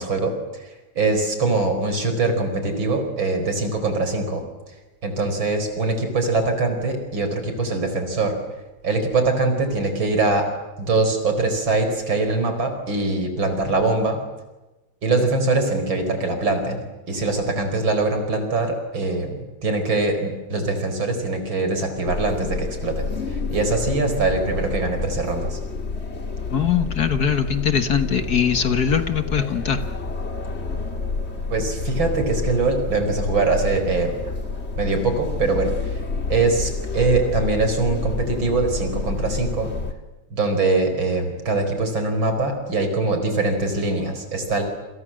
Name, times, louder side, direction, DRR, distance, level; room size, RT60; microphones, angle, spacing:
voice 1, 0.0-4.4 5.0-8.4 8.8-10.5 10.8-14.2 15.0-25.6 31.5-34.3 34.8-36.0 36.3-39.7 40.3-44.6, right 3 dB, 70° right, 7 dB, 5.2 m, -23 dB
sound 1, 22.1-39.9, left 4 dB, 35° left, 2.1 m, -29 dB
voice 2, 26.5-29.8, left 7 dB, 55° left, 9 dB, 1.8 m, -21 dB
29.0 x 26.5 x 7.6 m, 1.1 s
omnidirectional pair, 2.2 m